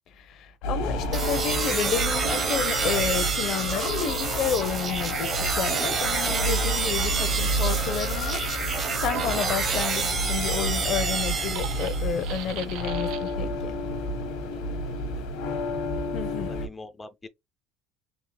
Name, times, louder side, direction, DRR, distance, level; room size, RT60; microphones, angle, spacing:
voice 1, 0.1-13.7 16.1-16.5, left 8 dB, 60° left, 0.7 m, -31 dB
sound 1, 0.6-16.7, left 1 dB, 85° left, 1.2 m, -30 dB
sound 2, 1.1-12.3, right 5 dB, 40° right, 0.9 m, -28 dB
sound 3, 8.7-13.5, right 13 dB, 75° right, 0.4 m, -41 dB
voice 2, 14.5-15.4 16.5-17.3, left 3 dB, 15° left, 0.4 m, -45 dB
3.6 x 2.7 x 3.3 m
supercardioid pair, 110°, 0 cm